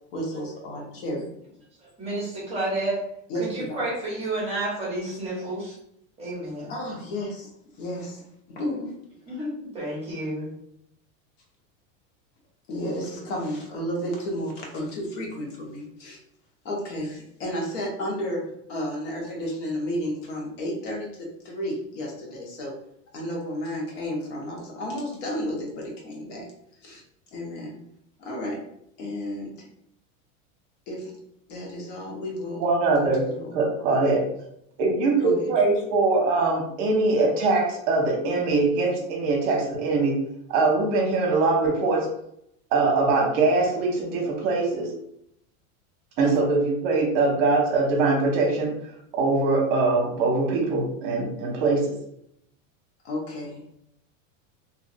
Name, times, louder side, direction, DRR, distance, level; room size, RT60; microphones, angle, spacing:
voice 1, 0.1-1.3 3.3-3.8 6.7-7.5 7.8-8.2 8.5-8.9 12.7-16.2 16.6-22.7 23.1-26.5 26.8-27.0 27.3-27.8 28.2-28.6 29.0-29.7 30.9-31.1 31.5-32.6 32.9-33.6 35.2-35.5 46.2-46.3 53.0-53.6, equal, 65° left, -1 dB, 1.2 m, -32 dB
voice 2, 2.0-3.0 3.4-5.7 6.2-6.7 9.2-10.5, right 1 dB, 15° right, -6 dB, 1.1 m, -30 dB
voice 3, 32.6-33.2 33.5-34.2 34.8-40.2 40.5-42.1 42.7-44.9 46.2-48.7 49.1-51.9, right 3 dB, 50° right, 0 dB, 0.9 m, -22 dB
2.8 x 2.7 x 2.6 m, 0.74 s
supercardioid pair, 155°, 40 cm